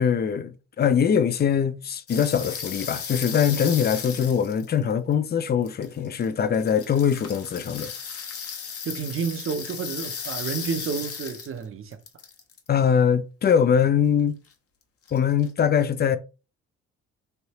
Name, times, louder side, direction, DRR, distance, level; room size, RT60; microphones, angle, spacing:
voice 1, 0.0-7.9 12.7-14.3 15.1-16.2, left 7 dB, 35° left, 0.4 m, -22 dB
sound 1, 2.1-5.1 5.6-6.3 6.5-11.6 11.9-12.7 15.1-15.5, left 6 dB, 50° left, 0.9 m, -36 dB
voice 2, 8.8-12.0, right 6 dB, 45° right, 0.7 m, -30 dB
3.3 x 2.6 x 2.8 m
supercardioid pair, 75°, 30 cm